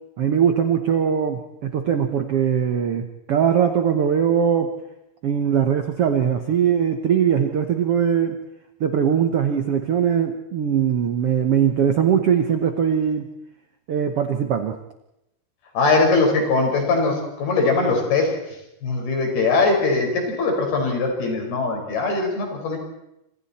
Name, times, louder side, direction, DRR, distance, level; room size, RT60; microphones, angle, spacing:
voice 1, 0.2-4.7 5.2-8.4 8.8-13.3 13.9-14.8, right 8 dB, 80° right, 7 dB, 1.3 m, -21 dB
voice 2, 15.8-18.3 18.8-22.8, left 3 dB, 75° left, 2 dB, 6.9 m, -21 dB
27.0 x 26.5 x 4.3 m, 0.86 s
omnidirectional pair, 4.5 m